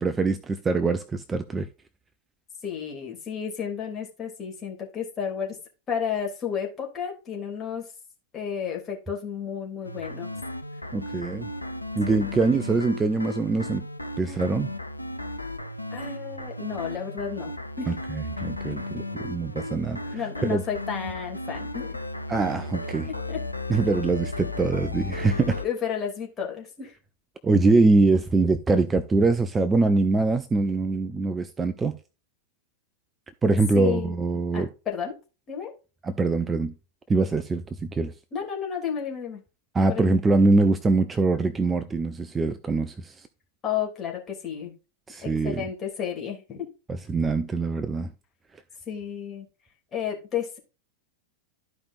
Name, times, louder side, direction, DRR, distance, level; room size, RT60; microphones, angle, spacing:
voice 1, 0.0-1.7 10.9-11.5 12.0-13.8 14.2-14.7 17.9-20.6 22.3-23.1 23.7-25.6 27.4-31.9 33.4-34.7 36.0-36.7 37.1-38.1 39.7-43.3 45.1-45.6 46.9-48.1, right 3 dB, 15° right, 0.6 m, -23 dB
voice 2, 2.6-5.6 5.9-7.9 8.3-10.3 12.1-12.3 14.2-14.6 15.9-17.9 19.6-19.8 20.1-22.0 23.1-23.4 25.6-27.0 33.7-34.1 34.5-35.1 35.5-35.7 38.3-39.4 39.9-40.2 43.6-44.7 45.2-46.7 48.9-49.4 49.9-50.6, left 8 dB, 25° left, 3.0 m, -32 dB
sound 1, 9.8-25.7, left 2 dB, 85° left, 0.5 m, -35 dB
13.0 x 5.1 x 2.6 m
figure-of-eight pair, 90°, 0 cm